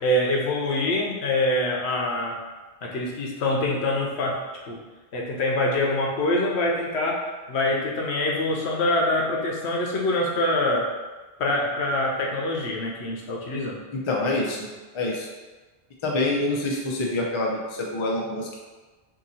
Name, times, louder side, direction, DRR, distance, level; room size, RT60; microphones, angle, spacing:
voice 1, 0.0-2.4 2.8-4.4 4.7-4.8 5.1-7.2 7.5-10.9 11.4-13.8, left 1 dB, 75° left, -2 dB, 0.9 m, -25 dB
voice 2, 13.9-14.7 14.9-15.3 16.0-18.6, left 2 dB, 40° left, -1 dB, 0.4 m, -26 dB
2.8 x 2.7 x 3.9 m, 1.3 s
omnidirectional pair, 1.1 m